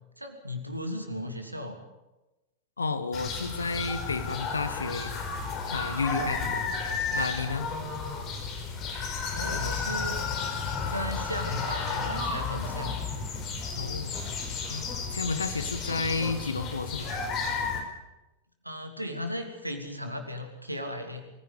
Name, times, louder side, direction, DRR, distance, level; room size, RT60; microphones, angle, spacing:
voice 1, 0.2-1.8 9.3-10.2 10.9-13.0 18.6-21.2, equal, 85° right, 5 dB, 3.1 m, -36 dB
voice 2, 2.8-5.1 5.7-6.5 7.1-7.7 13.8-14.2 14.7-17.1, left 4 dB, 75° left, 11 dB, 1.7 m, -31 dB
sound 1, 3.1-17.8, left 4 dB, 35° left, 4.9 m, -32 dB
23.5 x 16.0 x 8.5 m, 1.0 s
figure-of-eight pair, 90°, 0 cm